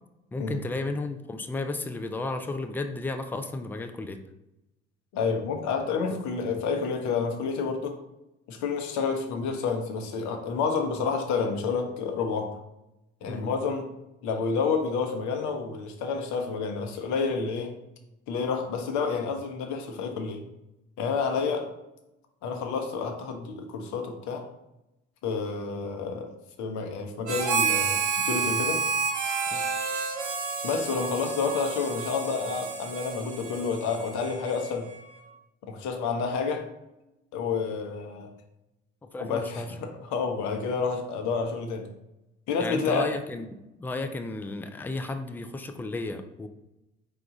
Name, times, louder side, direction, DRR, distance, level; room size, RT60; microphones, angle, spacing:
voice 1, 0.3-4.2 13.2-13.4 29.5-29.6 39.1-39.7 42.6-46.5, left 2 dB, 5° left, 7 dB, 0.3 m, -33 dB
voice 2, 5.1-8.0 8.5-12.6 13.2-13.9 14.2-17.7 18.3-20.4 21.0-21.7 22.4-24.5 25.2-26.3 26.6-28.8 30.6-34.9 35.7-36.7 37.3-38.3 39.2-41.9 42.5-43.1, left 5 dB, 55° left, 4 dB, 0.8 m, -29 dB
Harmonica, 27.3-35.0, right 5 dB, 80° right, 0.5 m, -30 dB
4.8 x 2.3 x 3.8 m, 0.91 s
figure-of-eight pair, 50°, 34 cm